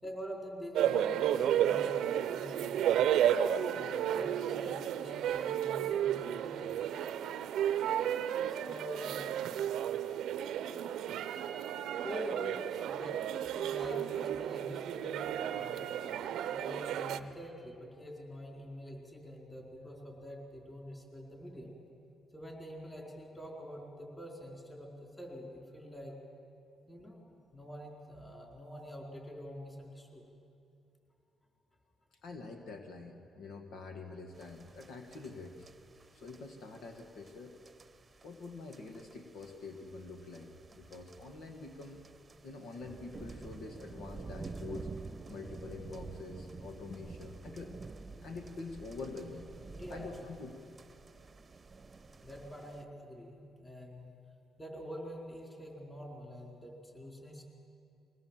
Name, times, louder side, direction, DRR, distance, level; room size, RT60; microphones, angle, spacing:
voice 1, 0.0-3.0 3.7-6.8 8.5-9.3 12.0-16.2 16.5-21.7 22.3-26.2 26.9-30.2 49.7-50.1 52.2-54.0 54.6-57.4, equal, 15° left, 0 dB, 4.6 m, -46 dB
sound 1, 0.7-17.2, right 10 dB, 80° right, 0.7 m, -32 dB
voice 2, 32.2-35.7 36.1-37.6 38.2-42.0 42.4-44.9 45.3-47.7 48.2-49.4 49.9-50.6, left 3 dB, 75° left, 4 dB, 1.7 m, -46 dB
sound 2, 34.3-52.8, right 4 dB, 30° right, 0.9 m, -50 dB
22.5 x 18.0 x 7.5 m, 2.6 s
cardioid pair, 90°, 0 cm